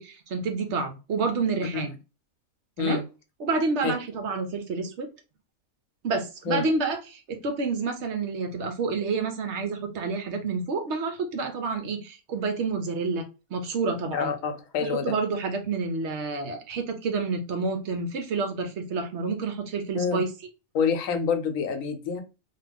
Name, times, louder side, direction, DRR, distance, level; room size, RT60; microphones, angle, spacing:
voice 1, 0.0-1.9 2.8-3.0 3.4-5.1 6.0-13.2 13.5-14.3 14.8-20.3, right 4 dB, 65° right, 6 dB, 0.9 m, -29 dB
voice 2, 14.1-15.1 19.9-20.2 20.7-22.2, left 6 dB, 85° left, 8 dB, 1.0 m, -27 dB
2.8 x 2.3 x 3.4 m, 0.30 s
omnidirectional pair, 1.4 m